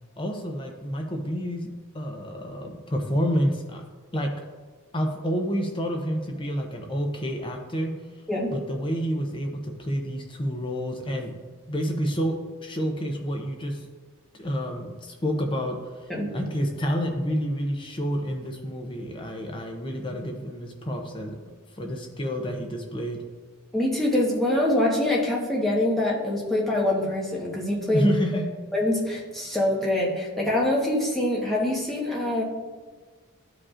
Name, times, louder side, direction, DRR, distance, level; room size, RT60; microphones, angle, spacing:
voice 1, 0.2-1.7 1.9-3.8 4.1-4.3 4.9-7.9 8.5-11.4 11.7-12.4 12.6-13.9 14.4-21.4 21.7-23.2 27.9-28.4, equal, 25° left, 2 dB, 0.6 m, -29 dB
voice 2, 23.7-28.1 28.7-32.4, left 1 dB, ahead, -5 dB, 1.1 m, -24 dB
12.5 x 4.9 x 2.5 m, 1.5 s
head